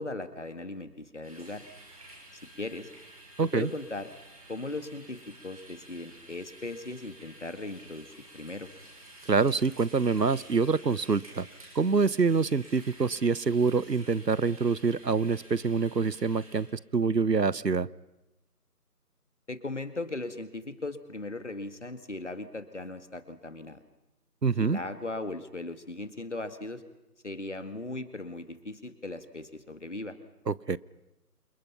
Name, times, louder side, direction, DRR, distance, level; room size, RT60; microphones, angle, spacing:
voice 1, 0.0-1.6 2.6-2.9 3.5-4.1 4.5-8.7 19.5-23.8 24.6-26.8 27.2-30.2, left 2 dB, 45° left, 10 dB, 2.0 m, -38 dB
sound 1, 1.2-16.6, right 1 dB, 20° right, 5.4 m, -52 dB
voice 2, 3.4-3.7 9.3-11.5 11.7-16.7 16.9-17.9 24.4-24.8 30.5-30.8, right 4 dB, 85° right, 21 dB, 1.0 m, -26 dB
30.0 x 28.0 x 5.8 m, 1.0 s
figure-of-eight pair, 165°, 48 cm